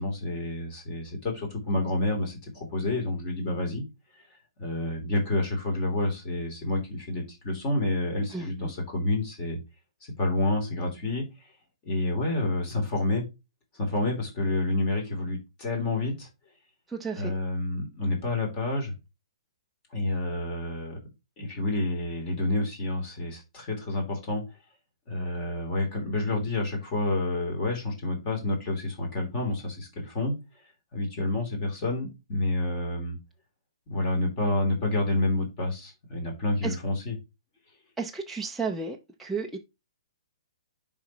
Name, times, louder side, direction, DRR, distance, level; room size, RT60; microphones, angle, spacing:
voice 1, 0.0-3.8 4.1-9.6 10.0-11.2 11.8-13.2 13.7-16.3 17.2-18.9 19.9-21.0 21.4-24.4 25.1-30.4 30.9-33.2 33.9-37.1, left 2 dB, 25° left, 3.1 m, -29 dB
voice 2, 8.3-8.7 16.9-17.3 36.6-36.8 38.0-39.6, right 4 dB, 5° right, 0.5 m, -33 dB
10.0 x 4.0 x 3.0 m
hypercardioid pair, 160°, 3 cm